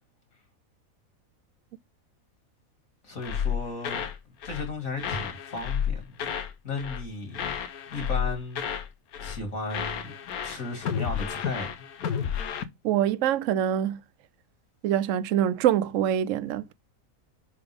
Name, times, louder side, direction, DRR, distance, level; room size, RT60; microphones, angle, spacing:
voice 1, 3.0-4.1 4.4-6.3 6.6-7.6 7.9-8.6 9.2-10.1 10.4-11.7, left 3 dB, 65° left, 2.8 m, -35 dB
sound 1, 3.2-4.2 4.4-4.7 5.0-6.5 6.8-7.1 7.3-8.9 9.1-9.4 9.7-12.6, left 8 dB, 90° left, 1.3 m, -31 dB
voice 2, 12.8-14.0 14.8-16.7, right 10 dB, 65° right, 0.9 m, -25 dB
9.8 x 3.9 x 3.4 m
omnidirectional pair, 1.5 m